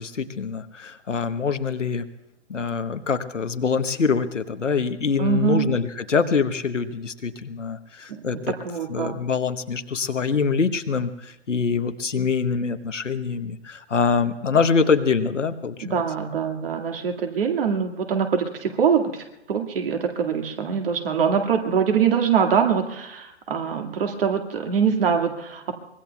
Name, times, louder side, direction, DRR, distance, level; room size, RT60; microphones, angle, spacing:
voice 1, 0.0-2.1 2.5-8.5 8.9-16.0, left 5 dB, 85° left, 9 dB, 1.1 m, -24 dB
voice 2, 5.2-5.7 8.1-9.2 15.8-19.1 19.5-25.7, right 7 dB, 50° right, 4 dB, 2.0 m, -23 dB
24.0 x 20.5 x 2.3 m, 0.90 s
figure-of-eight pair, 130°, 36 cm